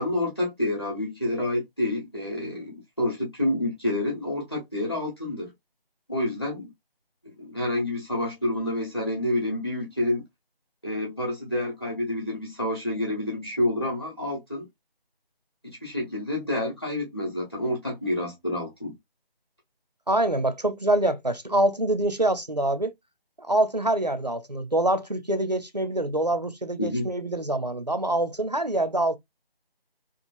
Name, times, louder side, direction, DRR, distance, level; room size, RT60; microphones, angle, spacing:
voice 1, 0.0-5.5 6.1-6.7 7.2-10.2 10.8-14.7 15.6-18.9 26.8-27.1, left 1 dB, 25° left, 0.9 m, -28 dB
voice 2, 20.1-22.9 23.4-29.2, right 1 dB, 45° right, 0.4 m, -25 dB
3.0 x 2.4 x 2.2 m
figure-of-eight pair, 170°, 30 cm